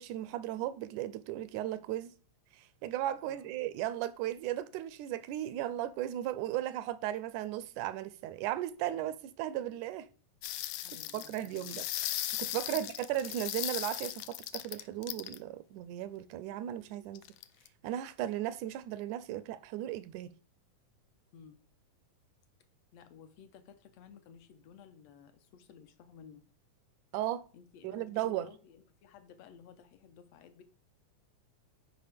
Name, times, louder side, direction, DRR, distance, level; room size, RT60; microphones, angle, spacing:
voice 1, 0.0-2.2 2.5-10.1 11.1-17.2 17.8-20.3 27.1-27.5 27.8-28.5, right 13 dB, 85° right, 2.0 m, -36 dB
voice 2, 3.2-3.5 10.8-11.9 12.7-12.9 21.3-21.6 22.9-26.4 27.5-30.6, left 7 dB, 70° left, 1.8 m, -55 dB
sound 1, 10.4-15.4 17.1-17.7, left 14 dB, 90° left, 1.4 m, -37 dB
10.5 x 5.0 x 3.4 m
omnidirectional pair, 3.4 m